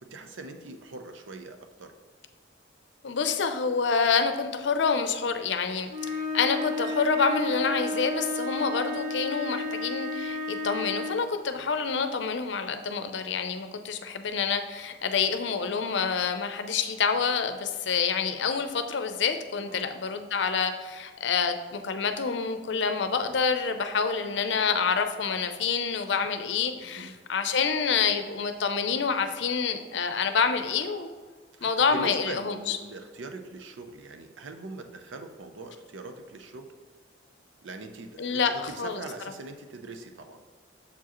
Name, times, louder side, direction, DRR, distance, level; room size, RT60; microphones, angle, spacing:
voice 1, 0.0-1.9 11.5-11.7 19.7-19.9 23.1-23.4 26.8-27.1 31.5-36.7 37.6-40.4, right 3 dB, 85° right, 6 dB, 0.6 m, -42 dB
voice 2, 3.0-31.1 31.6-32.8 38.2-39.0, left 5 dB, 70° left, 8 dB, 0.5 m, -27 dB
sound 1, 5.9-11.4, left 2 dB, 40° right, 0.7 m, -32 dB
6.8 x 4.8 x 3.0 m, 1.5 s
head